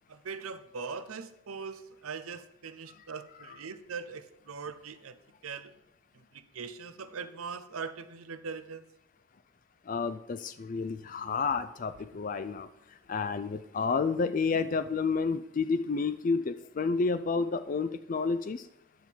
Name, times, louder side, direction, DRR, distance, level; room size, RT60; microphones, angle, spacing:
voice 1, 0.1-5.2 5.4-5.7 6.3-8.8, right 5 dB, 90° right, 12 dB, 0.7 m, -41 dB
voice 2, 9.9-12.7 13.1-18.6, left 4 dB, 40° left, 12 dB, 0.4 m, -30 dB
10.5 x 7.2 x 4.6 m, 0.88 s
head